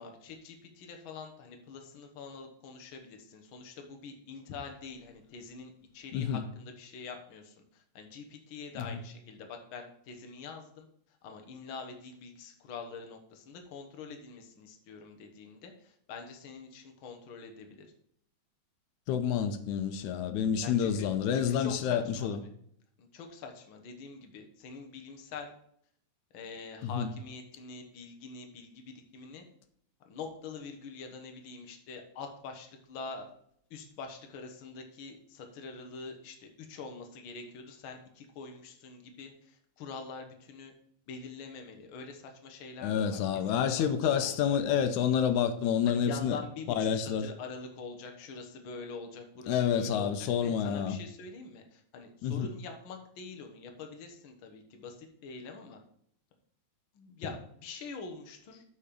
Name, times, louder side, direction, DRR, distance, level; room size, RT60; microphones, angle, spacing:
voice 1, 0.0-10.9 11.2-17.9 20.6-21.1 21.3-22.4 23.0-25.5 26.3-29.4 30.0-33.3 33.7-40.7 41.1-43.2 43.5-44.5 45.8-55.8 56.9-58.6, left 4 dB, 55° left, 1.6 m, -45 dB
voice 2, 19.1-22.4 26.8-27.1 42.8-46.4 46.8-47.3 49.5-51.0 52.2-52.5, left 8 dB, 85° left, 2.1 m, -28 dB
8.6 x 4.3 x 7.3 m
omnidirectional pair, 3.4 m